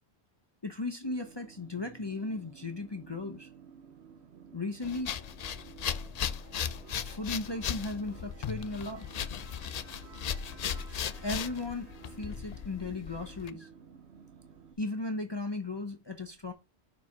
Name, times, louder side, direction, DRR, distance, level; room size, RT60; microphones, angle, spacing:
voice 1, 0.6-3.5 4.5-5.1 7.0-9.1 11.2-11.9 12.2-13.7 14.8-16.5, left 2 dB, 25° left, 0.7 m, -36 dB
sound 1, 1.0-14.7, right 6 dB, 75° right, 1.2 m, -53 dB
sound 2, 4.8-13.5, left 8 dB, 60° left, 0.4 m, -37 dB
5.5 x 4.8 x 5.8 m
omnidirectional pair, 1.1 m